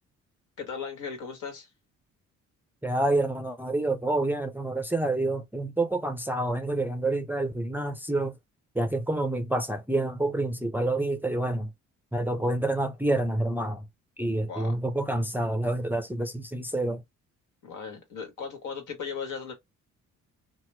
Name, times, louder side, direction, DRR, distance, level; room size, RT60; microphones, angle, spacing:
voice 1, 0.6-1.7 14.5-14.8 17.6-19.5, left 6 dB, 80° left, 1.4 m, -37 dB
voice 2, 2.8-8.4 8.7-11.7 12.1-13.9 14.2-17.0, right 2 dB, 5° right, 0.5 m, -28 dB
2.9 x 2.1 x 3.2 m
cardioid pair, 90°, 30 cm